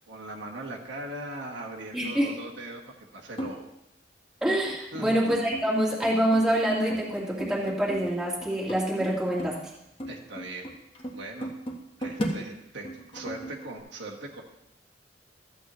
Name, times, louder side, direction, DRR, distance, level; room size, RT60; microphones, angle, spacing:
voice 1, 0.0-3.7 4.9-5.2 10.1-10.7 11.1-11.5 12.0-14.4, right 2 dB, 80° right, -1 dB, 1.6 m, -39 dB
voice 2, 1.9-2.3 4.4-9.6, right 1 dB, 5° right, -6 dB, 2.0 m, -26 dB
sound 1, 3.4-3.6 4.4-5.0 5.3-5.7 6.0-9.7 10.0-12.4 12.8-13.7, equal, 30° left, 1.3 m, -36 dB
14.0 x 8.3 x 3.1 m, 0.87 s
head